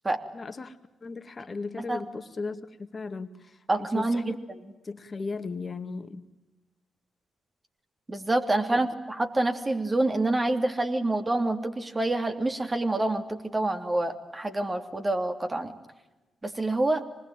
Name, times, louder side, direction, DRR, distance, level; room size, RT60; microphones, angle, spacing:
voice 1, 0.3-4.4 4.8-6.3 8.7-8.8, left 4 dB, 40° left, 9 dB, 2.0 m, -37 dB
voice 2, 3.7-4.3 8.1-15.7 16.4-17.0, right 2 dB, 25° right, 6 dB, 3.0 m, -27 dB
25.5 x 20.5 x 9.0 m, 1.1 s
supercardioid pair, 50°, 0 cm